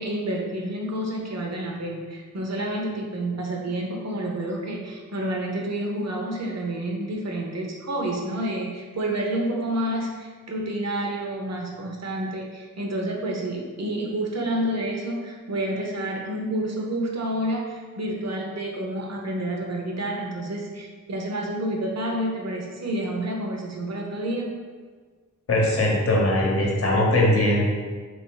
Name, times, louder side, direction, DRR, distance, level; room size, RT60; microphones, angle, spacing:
voice 1, 0.0-24.5, right 1 dB, 55° right, 0 dB, 0.8 m, -29 dB
voice 2, 25.5-27.6, left 1 dB, 45° left, -2 dB, 0.9 m, -20 dB
3.6 x 2.6 x 3.8 m, 1.5 s
wide cardioid pair, 85°, 32 cm